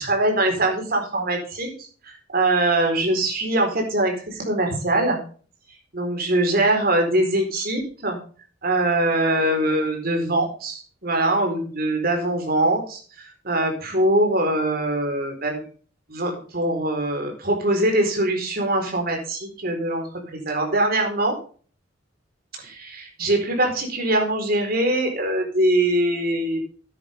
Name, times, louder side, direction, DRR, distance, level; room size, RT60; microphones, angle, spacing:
voice 1, 0.0-5.2 5.9-8.2 8.6-15.6 16.1-21.4 22.6-26.6, right 1 dB, 50° right, 3 dB, 4.3 m, -23 dB
13.5 x 10.0 x 3.6 m, 0.40 s
head